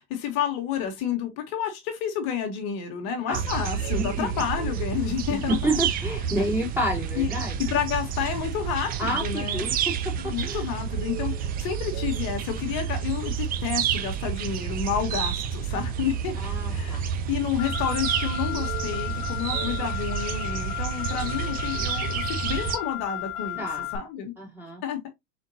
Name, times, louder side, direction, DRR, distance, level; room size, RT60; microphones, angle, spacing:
voice 1, 0.0-5.6 7.1-7.3 7.7-9.6 10.2-16.3 16.7-23.7 23.9-24.3 24.8-25.0, left 8 dB, 55° left, 1.2 m, -30 dB
sound 1, 3.3-22.8, right 8 dB, 25° right, 0.3 m, -29 dB
voice 2, 3.9-4.3 5.3-7.6 9.0-9.9 10.2-10.6 16.4-17.0 23.6-23.9 24.4-24.8, equal, 5° right, 2.6 m, -29 dB
Car, 17.6-24.0, left 12 dB, 75° left, 1.5 m, -34 dB
4.3 x 3.8 x 2.7 m
supercardioid pair, 110°, 46 cm